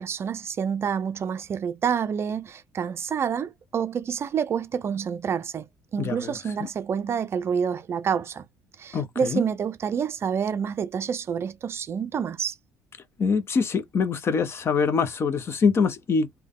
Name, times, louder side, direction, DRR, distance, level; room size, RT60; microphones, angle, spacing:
voice 1, 0.0-5.7 5.9-8.4 8.8-12.6, right 7 dB, 40° right, 0.4 m, -28 dB
voice 2, 6.0-6.3 8.9-9.4 13.2-16.4, left 5 dB, 40° left, 0.7 m, -24 dB
3.5 x 2.2 x 3.5 m
supercardioid pair, 90°, 7 cm